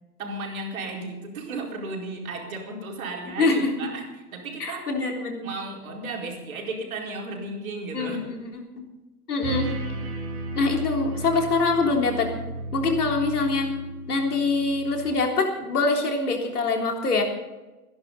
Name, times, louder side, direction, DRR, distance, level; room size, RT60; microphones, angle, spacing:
voice 1, 0.2-4.1 4.3-4.8 5.4-8.3, right 2 dB, 65° right, 0 dB, 4.7 m, -34 dB
voice 2, 3.4-3.7 4.6-5.5 7.9-8.4 9.3-9.7 10.6-12.3 12.7-13.7 14.1-17.2, left 3 dB, 75° left, 1 dB, 3.7 m, -24 dB
sound 1, 9.4-15.1, right 2 dB, 35° right, 5.0 m, -34 dB
28.5 x 11.0 x 4.1 m, 1.1 s
figure-of-eight pair, 100°, 45 cm